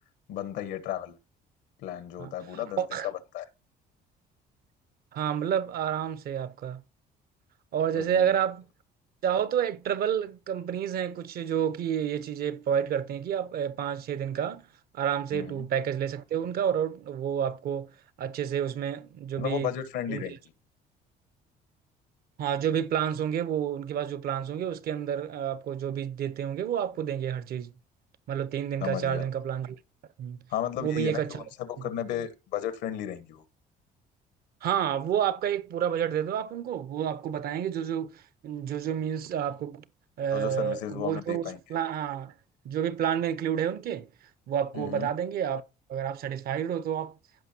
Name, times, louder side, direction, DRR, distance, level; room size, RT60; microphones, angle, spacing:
voice 1, 0.3-1.2 1.8-3.4 8.0-8.3 15.3-15.7 19.3-20.4 28.8-29.2 30.5-33.4 40.3-41.6 44.7-45.1, left 10 dB, 90° left, 1.2 m, -34 dB
voice 2, 2.2-3.1 5.1-6.8 7.7-8.7 9.2-14.7 14.9-17.9 18.2-19.7 20.1-20.4 22.4-27.7 28.3-29.8 30.2-30.4 30.8-31.4 34.6-39.8 40.2-41.4 41.7-42.3 42.6-44.1 44.5-45.6 45.9-47.2, right 9 dB, 65° right, 0.7 m, -29 dB
15.5 x 5.3 x 2.8 m
cardioid pair, 110°, 17 cm